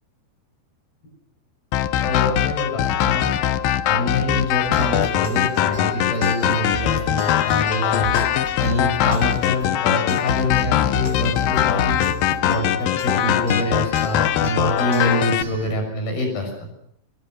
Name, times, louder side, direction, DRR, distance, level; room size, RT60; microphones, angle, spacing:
sound 1, 1.7-15.4, left 11 dB, 70° left, 2.4 m, -21 dB
voice 1, 2.0-3.3 3.9-8.2 8.6-12.0 12.4-16.5, left 1 dB, 55° left, 4 dB, 8.3 m, -25 dB
sound 2, 4.6-15.7, right 1 dB, 35° right, 1.4 m, -35 dB
26.0 x 21.5 x 6.6 m, 0.71 s
omnidirectional pair, 5.1 m